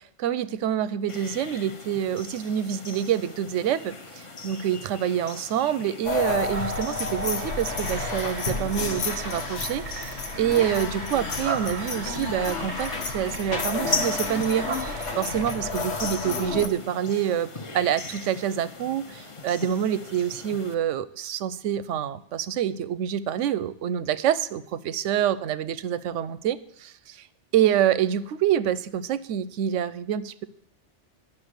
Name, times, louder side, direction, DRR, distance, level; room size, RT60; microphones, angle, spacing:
voice 1, 0.2-14.7 15.2-17.5 17.7-27.3 27.5-30.4, right 10 dB, 90° right, 16 dB, 0.9 m, -26 dB
sound 1, 1.1-20.7, left 3 dB, 30° left, 0.7 m, -39 dB
sound 2, 6.0-16.7, left 4 dB, 80° left, 1.3 m, -31 dB
sound 3, 6.5-15.4, right 7 dB, 50° right, 0.7 m, -39 dB
11.0 x 5.9 x 8.0 m, 0.69 s
omnidirectional pair, 1.2 m